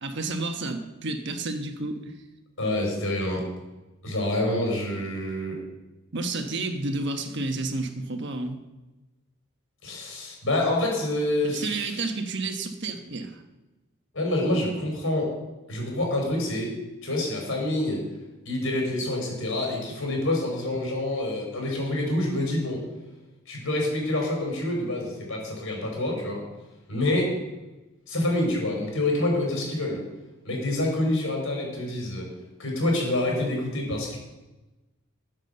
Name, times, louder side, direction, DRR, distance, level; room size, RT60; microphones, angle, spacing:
voice 1, 0.0-2.1 6.1-8.6 11.5-13.4, right 3 dB, 55° right, 5 dB, 1.3 m, -31 dB
voice 2, 2.6-3.4 4.0-5.6 9.8-11.9 14.1-15.3 15.7-16.7 17.0-18.0 18.5-22.8 23.5-26.4 26.9-27.3 28.1-30.0 30.5-32.3 32.6-34.2, left 1 dB, 70° left, 0 dB, 5.1 m, -27 dB
15.0 x 7.4 x 6.8 m, 1.1 s
head